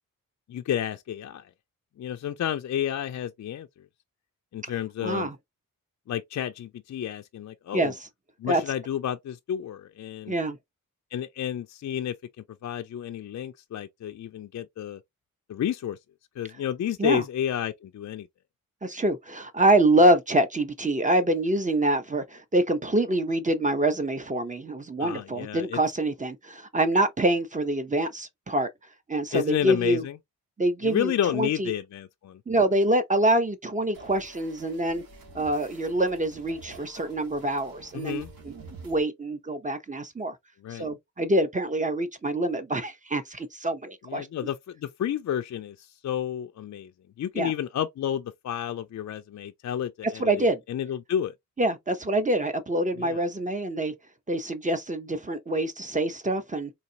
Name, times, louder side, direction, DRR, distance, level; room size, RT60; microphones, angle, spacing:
voice 1, 0.5-1.4 2.0-3.7 4.5-5.3 6.1-7.9 8.4-10.3 11.1-12.1 12.6-15.0 15.5-16.0 16.4-18.3 25.0-25.8 29.3-30.1 30.8-32.4 37.9-38.3 40.6-40.9 44.1-46.9 47.2-51.3 53.0-53.2, left 10 dB, 50° left, 0.4 m, -31 dB
voice 2, 5.0-5.4 7.7-8.1 8.5-8.6 10.3-10.6 17.0-17.2 18.8-28.7 29.1-30.0 30.6-31.7 32.5-35.0 35.3-38.5 38.8-40.4 40.7-44.3 47.3-47.5 50.0-50.6 51.6-53.9 54.3-56.7, right 1 dB, 20° right, 0.8 m, -25 dB
sound 1, 33.9-39.0, right 3 dB, 75° right, 1.9 m, -48 dB
4.0 x 2.8 x 2.8 m
cardioid pair, 75°, 35 cm